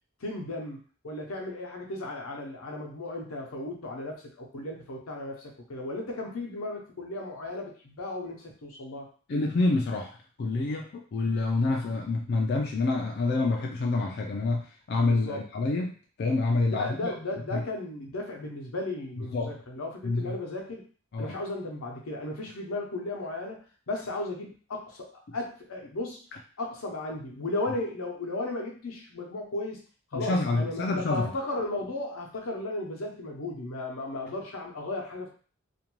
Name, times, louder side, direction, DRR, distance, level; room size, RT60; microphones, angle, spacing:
voice 1, 0.2-0.8 1.0-9.1 15.1-15.4 16.7-20.8 21.2-26.2 26.6-29.8 30.1-35.3, left 2 dB, 85° left, 1 dB, 0.7 m, -35 dB
voice 2, 9.3-17.1 17.5-17.6 19.3-19.5 20.0-20.4 21.1-21.3 30.1-31.3, left 3 dB, 50° left, 0 dB, 0.3 m, -27 dB
2.5 x 2.2 x 3.0 m, 0.40 s
head